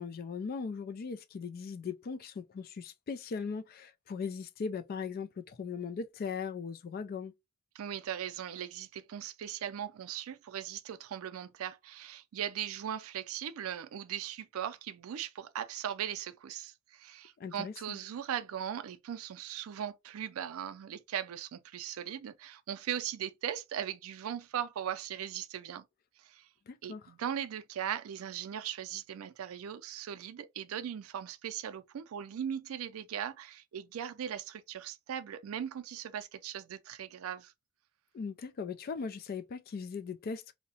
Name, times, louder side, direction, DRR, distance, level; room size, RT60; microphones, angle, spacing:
voice 1, 0.0-7.3 17.4-18.0 26.7-27.0 38.1-40.5, left 5 dB, 45° left, 0.3 m, -39 dB
voice 2, 7.8-25.8 26.2-26.5 26.8-37.5, right 9 dB, 85° right, 0.4 m, -39 dB
2.7 x 2.1 x 2.7 m
head